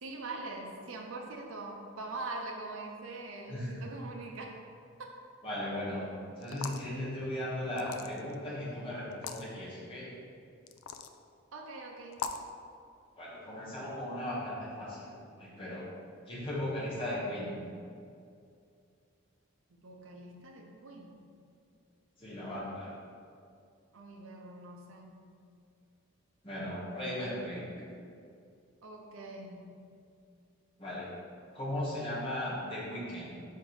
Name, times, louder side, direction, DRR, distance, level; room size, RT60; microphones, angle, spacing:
voice 1, 0.0-4.6 5.0-5.2 11.5-12.2 19.7-21.2 23.9-25.3 28.8-29.8, right 2 dB, 75° right, 1 dB, 0.7 m, -43 dB
voice 2, 3.5-3.8 5.4-6.1 6.4-10.1 13.2-15.9 16.3-17.6 22.2-22.9 26.4-27.9 30.8-31.1 31.5-33.4, left 1 dB, 25° left, -7 dB, 1.5 m, -37 dB
sound 1, 6.4-6.9 7.8-8.3 9.1-9.4 10.7-11.1 12.1-12.5, left 6 dB, 80° left, 0.4 m, -39 dB
5.0 x 4.6 x 4.8 m, 2.4 s
head